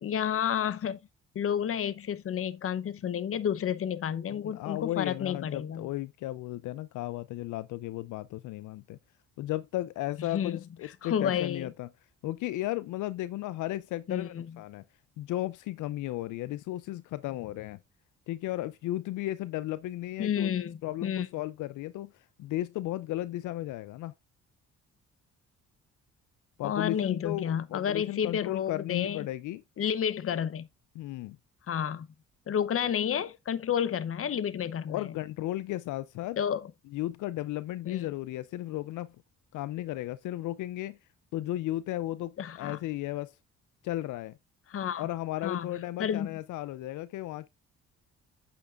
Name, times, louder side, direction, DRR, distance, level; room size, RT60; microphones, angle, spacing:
voice 1, 0.0-1.0 1.3-5.9 10.2-10.6 11.0-11.7 14.1-14.5 20.2-21.3 26.6-29.3 29.8-30.7 31.7-32.1 32.5-35.0 36.4-36.6 37.8-38.1 42.4-42.8 44.7-45.1 45.4-45.7 46.0-46.4, left 8 dB, 45° left, 0.8 m, -30 dB
voice 2, 4.3-9.0 9.4-11.9 12.2-14.8 15.2-17.8 18.3-20.5 20.8-24.1 26.6-29.6 31.0-31.4 34.9-36.4 36.9-39.2 39.5-41.0 41.3-43.4 43.8-44.4 45.0-47.5, left 15 dB, 80° left, 0.5 m, -35 dB
8.4 x 8.4 x 2.5 m
cardioid pair, 90°, 30 cm